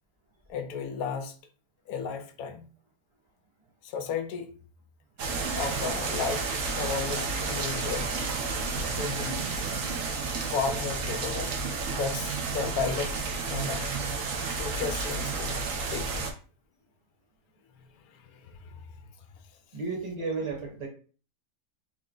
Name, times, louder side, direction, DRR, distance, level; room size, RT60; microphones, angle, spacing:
voice 1, 0.5-1.3 1.9-2.7 3.8-4.5 5.5-6.4 6.8-8.2 8.9-9.4 10.5-11.6 11.9-13.1 13.5-13.9 14.5-15.6 15.9-16.3 18.1-18.9, left 5 dB, 70° left, 1.0 m, -34 dB
sound 1, 5.2-16.3, right 4 dB, 60° right, 1.0 m, -31 dB
voice 2, 19.7-20.9, right 4 dB, 30° right, 1.0 m, -33 dB
3.7 x 2.1 x 3.8 m
omnidirectional pair, 1.7 m